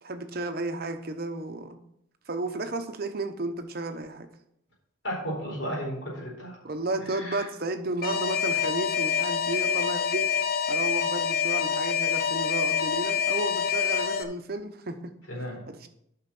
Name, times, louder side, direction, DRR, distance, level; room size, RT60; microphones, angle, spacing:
voice 1, 0.0-1.8 2.3-4.3 6.6-10.3 10.7-15.1 15.7-15.9, right 2 dB, 50° right, 7 dB, 0.9 m, -33 dB
voice 2, 5.0-6.6 7.1-7.5 15.3-15.6, equal, 65° left, -2 dB, 4.2 m, -34 dB
Alarm, 8.0-14.2, left 7 dB, 50° left, 0.8 m, -26 dB
8.7 x 5.8 x 6.0 m, 0.74 s
head